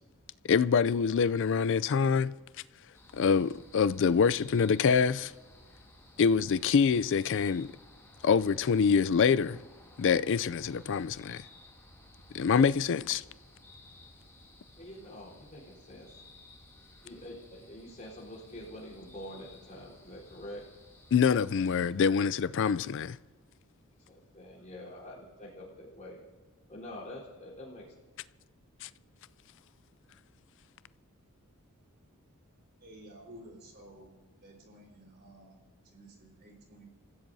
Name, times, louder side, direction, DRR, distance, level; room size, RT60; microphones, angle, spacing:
voice 1, 0.4-2.3 3.1-5.3 6.2-7.7 8.2-9.6 10.0-11.4 12.3-13.2 21.1-23.2 28.8-28.9, left 6 dB, 55° left, 0.4 m, -25 dB
sound 1, 2.9-21.8, left 2 dB, 15° left, 2.7 m, -56 dB
voice 2, 14.8-16.2 17.0-20.6 24.1-26.2 26.7-27.8, left 1 dB, 35° left, 3.9 m, -46 dB
voice 3, 32.8-34.1 34.4-36.9, right 1 dB, 50° right, 4.2 m, -53 dB
28.0 x 15.0 x 2.7 m
head